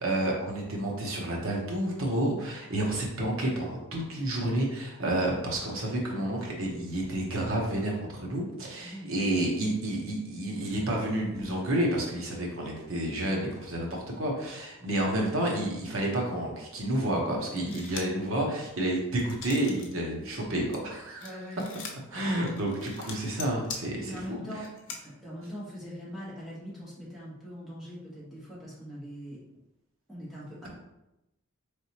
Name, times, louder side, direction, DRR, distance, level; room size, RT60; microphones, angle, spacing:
voice 1, 0.0-21.3 22.1-24.4, right 1 dB, 80° right, -1 dB, 1.0 m, -30 dB
voice 2, 8.8-9.1 17.5-17.8 21.2-21.6 22.1-22.5 24.0-29.4 30.1-30.7, equal, ahead, -8 dB, 1.2 m, -42 dB
sound 1, 17.6-18.2 18.7-19.9 20.3-25.0, left 5 dB, 65° left, 0.7 m, -42 dB
4.1 x 3.4 x 2.9 m, 0.91 s
head